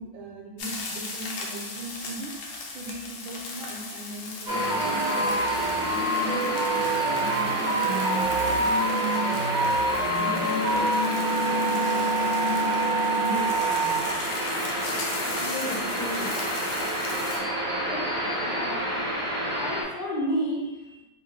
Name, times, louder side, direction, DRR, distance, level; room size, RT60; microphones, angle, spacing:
voice 1, 0.0-2.4 2.7-8.6 9.1-11.2 11.5-14.1, right 1 dB, 75° right, -1 dB, 1.3 m, -39 dB
sound 1, 0.6-17.4, left 3 dB, 80° left, 1.5 m, -38 dB
sound 2, 4.5-19.8, right 1 dB, 45° right, 0.6 m, -26 dB
voice 2, 15.2-16.3 17.9-18.1 18.4-19.0 19.5-21.0, equal, 60° left, -5 dB, 1.4 m, -32 dB
3.3 x 2.8 x 3.7 m, 1.0 s
omnidirectional pair, 2.4 m